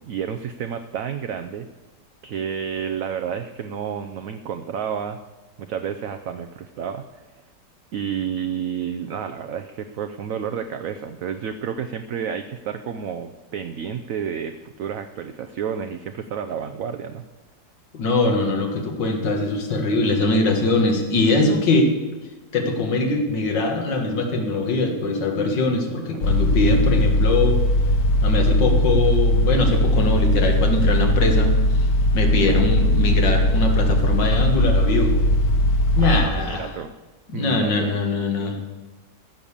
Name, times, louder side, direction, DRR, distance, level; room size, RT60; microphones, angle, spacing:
voice 1, 0.0-1.7 2.2-5.2 5.6-7.2 7.9-17.2 32.4-32.6 36.0-36.9 37.3-38.0, right 8 dB, 65° right, 8 dB, 0.9 m, -30 dB
voice 2, 17.9-21.9 22.5-27.6 28.2-31.5 32.1-35.2 36.0-36.7 37.3-38.6, left 2 dB, 85° left, 3 dB, 2.3 m, -22 dB
sound 1, 26.2-36.2, left 1 dB, 60° left, 1.4 m, -19 dB
14.5 x 6.9 x 7.2 m, 1.3 s
omnidirectional pair, 1.9 m